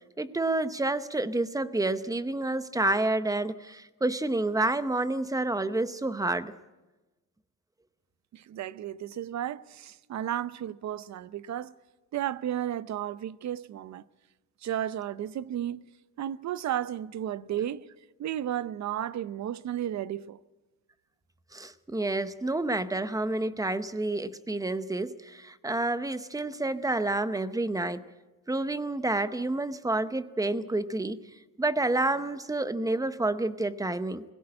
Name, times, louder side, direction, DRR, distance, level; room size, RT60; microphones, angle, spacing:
voice 1, 0.2-6.5 21.5-28.0 28.5-31.2 31.6-34.2, right 2 dB, 10° right, 0.7 m, -29 dB
voice 2, 8.3-11.7 12.1-14.0 14.6-15.8 16.2-17.9 18.2-20.4, right 11 dB, 55° right, 0.7 m, -33 dB
21.5 x 16.5 x 8.7 m
cardioid pair, 155°, 34 cm